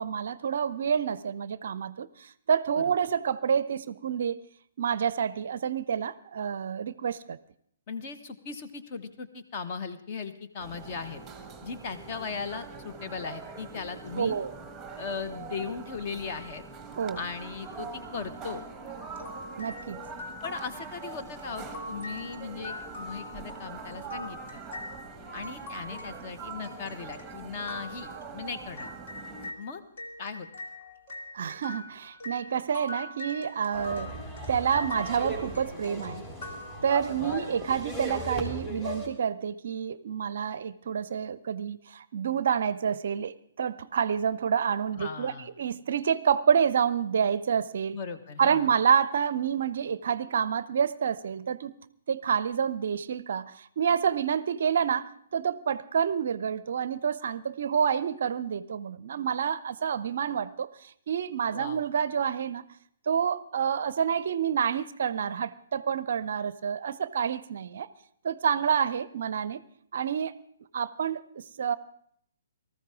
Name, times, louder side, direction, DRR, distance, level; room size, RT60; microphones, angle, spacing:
voice 1, 0.0-4.4 4.8-7.4 14.2-14.5 17.0-17.2 19.6-20.0 31.3-34.1 34.5-36.3 36.8-48.0 48.4-51.7 52.1-62.6 63.1-67.9 68.2-69.6 69.9-70.4 70.7-71.8, right 7 dB, 50° right, 18 dB, 0.5 m, -28 dB
voice 2, 7.9-11.2 11.6-14.4 15.0-16.6 17.1-18.6 20.4-24.6 25.3-28.9 29.6-29.8 30.2-30.5 37.2-37.4 45.0-45.5 47.9-48.7 61.5-61.8, left 5 dB, 35° left, 8 dB, 1.1 m, -38 dB
sound 1, 10.6-29.5, right 4 dB, 5° right, 1.4 m, -43 dB
sound 2, 19.2-29.6 30.0-37.3, left 2 dB, 50° left, 2.1 m, -43 dB
sound 3, 33.7-39.1, equal, 20° left, 3.4 m, -37 dB
19.0 x 14.0 x 3.6 m, 0.66 s
figure-of-eight pair, 125°, 0 cm